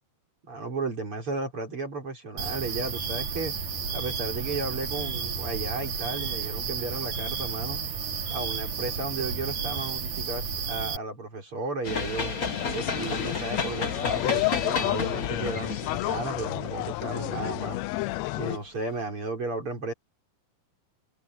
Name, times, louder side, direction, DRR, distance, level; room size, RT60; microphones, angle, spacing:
voice 1, 0.5-3.5 3.9-7.8 8.3-12.3 12.7-17.8 18.4-19.9, right 3 dB, 40° right, 5.0 m, -34 dB
sound 1, 2.4-11.0, right 5 dB, 60° right, 4.0 m, -32 dB
sound 2, 11.8-18.2, left 4 dB, 35° left, 1.6 m, -32 dB
sound 3, 12.4-18.6, left 18 dB, 85° left, 1.5 m, -31 dB
omnidirectional pair, 3.7 m